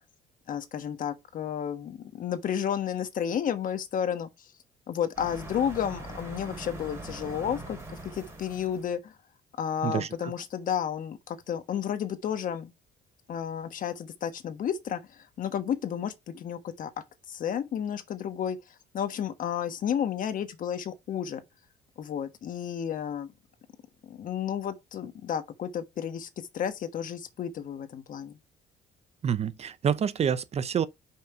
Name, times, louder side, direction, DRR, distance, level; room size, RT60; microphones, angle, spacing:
voice 1, 0.5-4.5 4.9-9.1 9.6-12.7 13.3-16.9 17.3-21.4 22.0-23.3 24.0-28.4, left 8 dB, 55° left, 1.2 m, -32 dB
sound 1, 5.2-8.9, right 2 dB, 15° right, 3.7 m, -42 dB
voice 2, 9.8-10.3 29.2-30.9, right 8 dB, 40° right, 0.6 m, -28 dB
5.7 x 5.2 x 4.4 m
cardioid pair, 110°, 17 cm